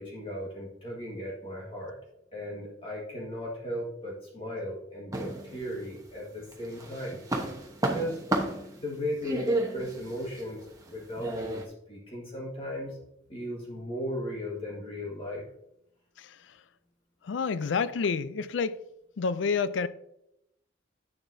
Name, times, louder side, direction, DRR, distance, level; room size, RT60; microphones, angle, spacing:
voice 1, 0.0-2.0 2.3-7.2 7.8-8.2 8.8-11.6 11.9-13.0 13.3-15.5, equal, 30° left, 1.6 m, -36 dB
sound 1, 5.1-6.1 6.5-11.6, right 1 dB, 20° right, 1.0 m, -32 dB
voice 2, 17.2-18.8 19.2-19.9, left 5 dB, 85° left, 0.4 m, -28 dB
8.9 x 7.1 x 2.7 m
head